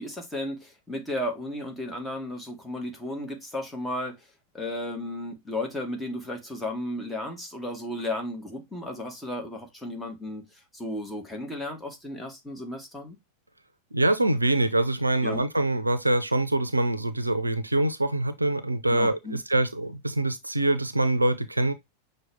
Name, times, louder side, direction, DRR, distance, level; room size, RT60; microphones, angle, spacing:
voice 1, 0.0-4.3 4.5-13.2 15.2-15.4 18.9-19.4, left 1 dB, 10° left, 1.2 m, -34 dB
voice 2, 13.9-21.7, right 2 dB, 85° right, 0.4 m, -24 dB
6.0 x 2.2 x 3.3 m
figure-of-eight pair, 90°, 0 cm